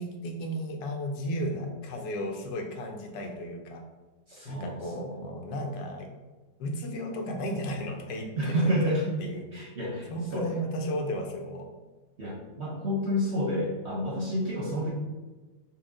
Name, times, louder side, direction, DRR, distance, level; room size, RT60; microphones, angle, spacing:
voice 1, 0.0-3.8 4.4-6.1 6.6-8.9 9.2-9.4 10.1-11.7, equal, 90° left, 4 dB, 1.3 m, -34 dB
voice 2, 4.3-5.2 8.4-9.0 9.5-10.4 12.2-14.9, equal, 55° right, -4 dB, 0.7 m, -29 dB
4.3 x 2.1 x 3.7 m, 1.2 s
omnidirectional pair, 1.9 m